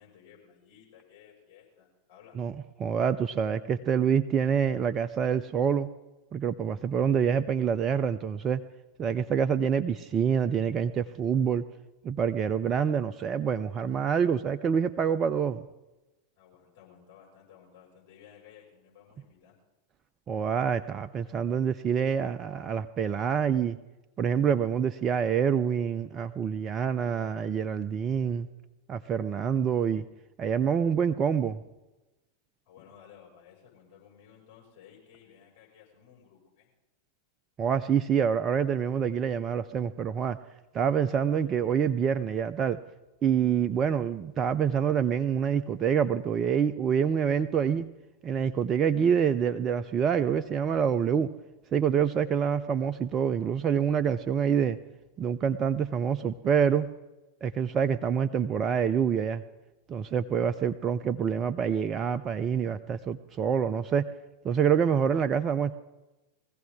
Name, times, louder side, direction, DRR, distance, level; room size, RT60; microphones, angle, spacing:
voice 1, 0.0-2.4 16.4-19.5 32.7-36.7, left 8 dB, 45° left, -3 dB, 6.1 m, -56 dB
voice 2, 2.8-5.9 6.3-8.6 9.0-11.6 12.0-15.6 20.3-23.8 24.2-28.5 28.9-30.0 30.4-31.6 37.6-40.4 40.7-42.8 43.2-47.9 48.2-51.3 51.7-54.8 55.2-56.9 57.4-59.4 59.9-64.1 64.4-65.7, right 7 dB, 25° right, 12 dB, 0.5 m, -26 dB
22.0 x 15.5 x 3.7 m, 1.1 s
figure-of-eight pair, 90°, 0 cm